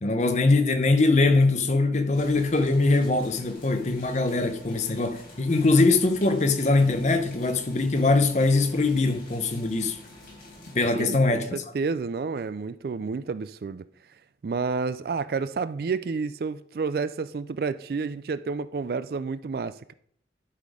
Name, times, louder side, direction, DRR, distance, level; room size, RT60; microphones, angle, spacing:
voice 1, 0.0-10.0 10.7-11.5, left 3 dB, 40° left, 0.8 m, -22 dB
sound 1, 2.1-10.8, left 1 dB, 55° left, 4.3 m, -47 dB
voice 2, 10.9-13.9 14.4-19.9, right 4 dB, 55° right, 0.3 m, -30 dB
11.5 x 4.2 x 4.9 m
head